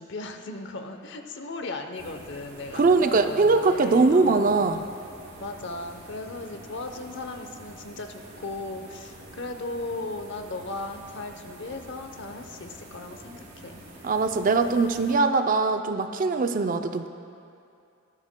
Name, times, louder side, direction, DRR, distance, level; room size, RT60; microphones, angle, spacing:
voice 1, 0.0-4.8 5.4-13.8, left 2 dB, 55° left, 5 dB, 0.8 m, -37 dB
sound 1, 1.9-15.1, right 1 dB, 70° right, 2.9 m, -47 dB
voice 2, 2.7-4.8 14.0-17.1, right 3 dB, 40° right, 7 dB, 0.4 m, -21 dB
19.0 x 13.0 x 2.2 m, 2.5 s
head